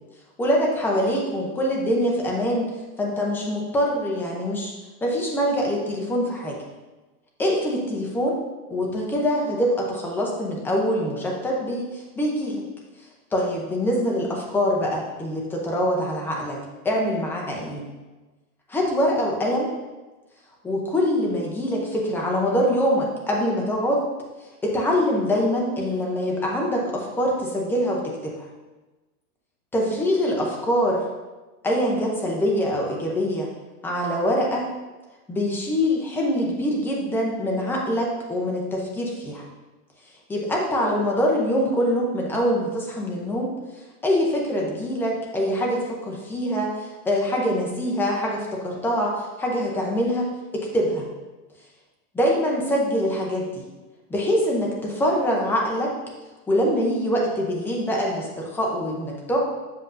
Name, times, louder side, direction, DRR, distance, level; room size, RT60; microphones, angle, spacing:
voice 1, 0.4-2.7 3.0-4.7 5.0-6.6 7.4-8.4 8.7-12.6 13.3-16.6 16.8-17.8 18.7-19.7 20.6-24.0 24.6-28.5 29.7-31.0 31.6-33.5 33.8-34.7 35.3-39.4 40.3-43.5 44.0-51.1 52.1-53.7 54.1-56.0 56.5-59.4, equal, 5° left, -2 dB, 0.6 m, -24 dB
7.7 x 6.7 x 2.6 m, 1.2 s
supercardioid pair, 155°, 46 cm